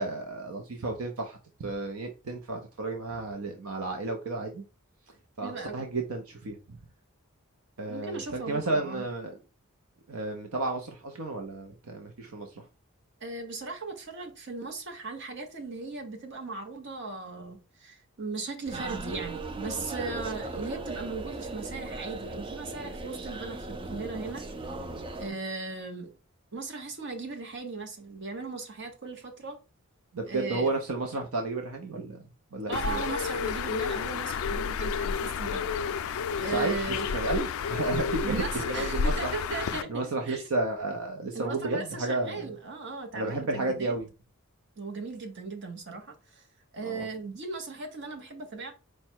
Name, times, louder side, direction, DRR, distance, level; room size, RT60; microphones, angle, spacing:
voice 1, 0.0-4.6 5.4-6.8 7.8-9.3 10.1-12.7 30.1-33.0 36.4-39.3 39.9-42.5 43.1-44.1 46.8-47.1, right 2 dB, 75° right, 0.6 m, -32 dB
voice 2, 5.4-5.8 7.9-9.0 13.2-24.4 25.2-26.1 26.5-29.6 30.3-30.7 32.7-36.0 36.4-37.1 38.2-40.4 41.3-43.9 44.8-46.4 46.7-48.7, right 3 dB, 55° right, 0.9 m, -37 dB
sound 1, 18.6-25.3, right 3 dB, 25° right, 0.4 m, -38 dB
Bird, 32.7-39.8, left 6 dB, 65° left, 0.3 m, -31 dB
4.6 x 2.1 x 4.4 m
head